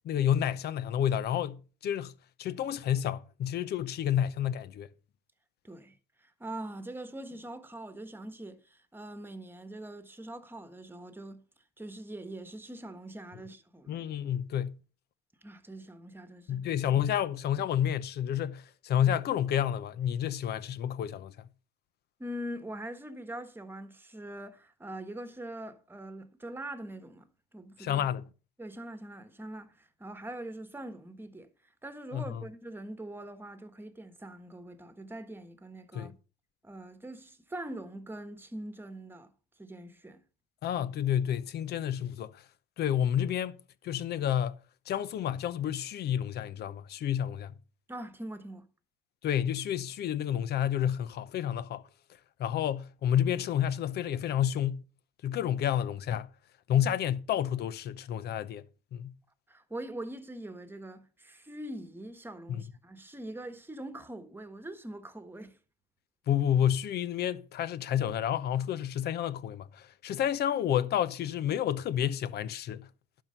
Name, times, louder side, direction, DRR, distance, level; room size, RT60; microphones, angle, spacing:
voice 1, 0.0-2.1 2.4-4.9 13.9-14.8 16.5-21.3 27.8-28.3 32.1-32.4 35.9-36.1 40.6-42.4 42.8-44.6 44.9-47.5 49.2-51.8 52.4-54.8 55.2-56.3 56.7-58.7 58.9-59.1 62.5-62.6 66.3-72.9, left 10 dB, 55° left, 0.8 m, -30 dB
voice 2, 5.6-6.0 6.2-11.4 11.8-14.1 15.4-16.6 22.2-27.3 27.5-28.1 28.6-31.5 31.8-36.1 36.6-39.3 39.6-40.2 47.9-48.6 59.5-65.6, right 1 dB, 10° right, 1.4 m, -43 dB
11.5 x 4.7 x 6.6 m
supercardioid pair, 95°, 20 cm